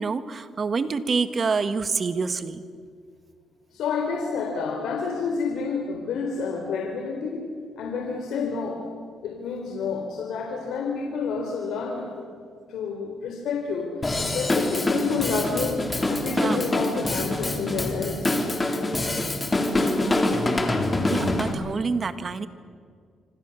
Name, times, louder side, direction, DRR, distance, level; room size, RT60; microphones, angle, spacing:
voice 1, 0.0-2.6 16.3-16.6 21.1-22.5, right 4 dB, 40° right, 11 dB, 1.6 m, -27 dB
voice 2, 3.7-7.4 7.8-8.8 9.2-12.2 12.7-13.9 14.2-18.3, left 5 dB, 80° left, 1 dB, 3.6 m, -29 dB
Drum kit / Drum, 14.0-21.5, left 2 dB, 20° left, 3.5 m, -25 dB
26.5 x 25.5 x 7.1 m, 2.1 s
cardioid pair, 90°, 0 cm